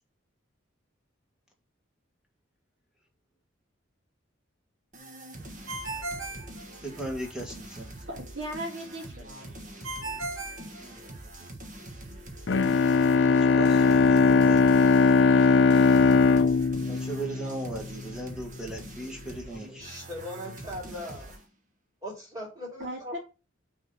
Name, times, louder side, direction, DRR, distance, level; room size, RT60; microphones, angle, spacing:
sound 1, 4.9-21.5, right 1 dB, 40° right, 1.4 m, -44 dB
Ringtone, 5.7-7.3 9.8-11.5, right 2 dB, 85° right, 1.8 m, -37 dB
voice 1, 6.8-7.9 10.8-11.0 13.4-14.7 16.9-19.7, right 2 dB, 5° right, 1.6 m, -37 dB
voice 2, 8.1-9.6 22.8-23.2, right 1 dB, 60° right, 2.2 m, -37 dB
Bowed string instrument, 12.5-18.0, left 4 dB, 60° left, 0.5 m, -20 dB
voice 3, 19.7-21.3 22.0-23.1, left 1 dB, 20° right, 3.4 m, -39 dB
6.1 x 3.8 x 5.5 m
head